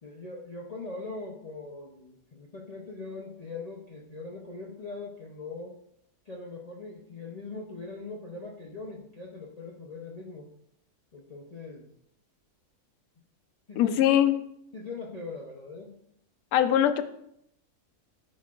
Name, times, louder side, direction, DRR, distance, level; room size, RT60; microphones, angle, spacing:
voice 1, 0.0-5.8 6.3-10.5 11.1-11.9 13.7-14.3 14.7-16.0, left 3 dB, 55° left, -2 dB, 0.4 m, -41 dB
voice 2, 13.8-14.4 16.5-17.0, left 11 dB, 75° left, 10 dB, 1.0 m, -22 dB
12.0 x 4.1 x 2.4 m, 0.76 s
omnidirectional pair, 1.6 m